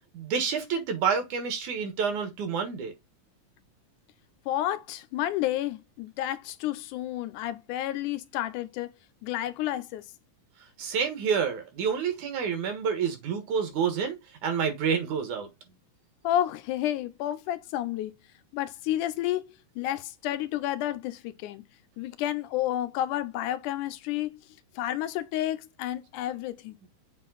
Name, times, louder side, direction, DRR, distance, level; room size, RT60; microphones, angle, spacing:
voice 1, 0.1-2.9 10.8-14.2 14.4-15.5, right 6 dB, 75° right, 3.0 m, -28 dB
voice 2, 4.5-8.9 9.2-10.1 16.2-18.1 18.5-21.6 22.0-24.4 24.8-26.8, left 13 dB, 90° left, 2.2 m, -30 dB
7.5 x 3.8 x 4.0 m
omnidirectional pair, 3.6 m